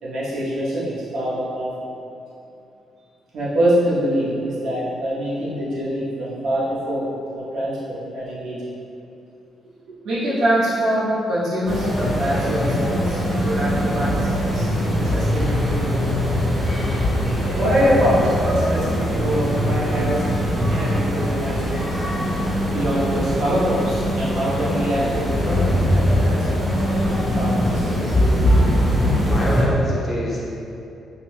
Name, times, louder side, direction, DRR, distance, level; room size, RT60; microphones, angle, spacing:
voice 1, 0.0-1.8 3.3-7.1 7.3-8.6 10.0-16.1 17.5-20.4 20.7-21.8 22.6-26.5 26.8-28.6, equal, 70° right, -8 dB, 0.8 m, -24 dB
sound 1, 11.7-29.6, equal, 5° right, 0.7 m, -21 dB
voice 2, 29.2-30.5, left 1 dB, 40° left, -5 dB, 0.7 m, -27 dB
2.8 x 2.1 x 3.2 m, 2.7 s
cardioid pair, 90°, 0 cm